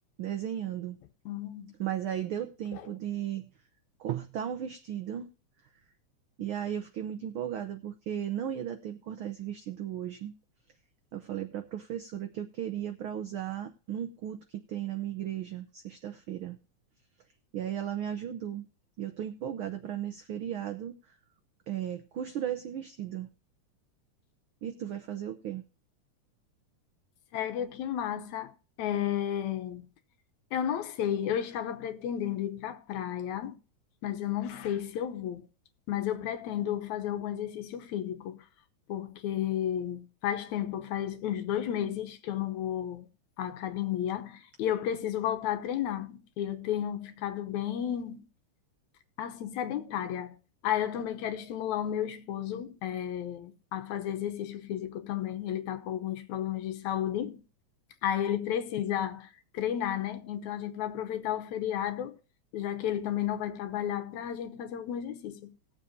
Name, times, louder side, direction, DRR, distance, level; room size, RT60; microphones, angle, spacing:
voice 1, 0.2-1.0 1.8-3.5 4.0-5.3 6.4-10.3 11.1-16.6 17.5-18.7 19.0-21.2 21.7-23.3 24.6-25.7, right 10 dB, 85° right, 1.1 m, -35 dB
voice 2, 1.3-1.8 2.7-2.8 27.3-29.9 30.5-33.6 34.0-35.5 35.9-38.5 38.9-43.1 43.4-48.3 49.2-50.4 50.6-57.4 58.0-59.3 59.5-62.2 62.5-65.5, left 10 dB, 75° left, 2.3 m, -32 dB
19.5 x 7.3 x 2.7 m
omnidirectional pair, 3.4 m